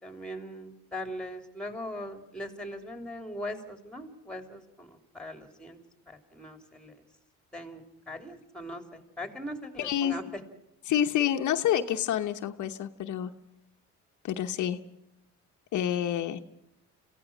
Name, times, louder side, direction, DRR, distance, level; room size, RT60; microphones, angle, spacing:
voice 1, 0.0-5.8 6.1-7.0 7.5-10.2, equal, 5° left, 6 dB, 3.3 m, -40 dB
voice 2, 9.8-10.2 10.9-13.3 14.2-14.8 15.7-16.4, left 10 dB, 75° left, 6 dB, 1.1 m, -28 dB
27.0 x 16.5 x 6.3 m, 0.86 s
cardioid pair, 90°, 30 cm